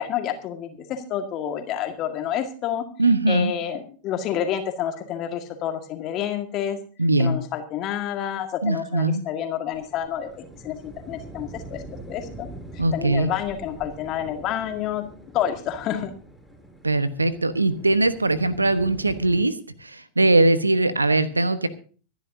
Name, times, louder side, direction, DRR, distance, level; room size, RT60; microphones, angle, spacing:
voice 1, 0.0-2.9 3.3-6.8 7.2-10.8 11.1-12.5 12.9-15.0 15.3-16.1, left 10 dB, 35° left, 5 dB, 1.9 m, -29 dB
voice 2, 3.0-3.5 7.0-7.4 8.6-9.2 12.8-13.3 16.8-19.5 19.8-21.7, right 2 dB, 80° right, 14 dB, 1.2 m, -21 dB
sound 1, 9.7-19.4, right 1 dB, ahead, 5.1 m, -43 dB
25.5 x 10.5 x 2.8 m, 0.39 s
figure-of-eight pair, 90°, 0 cm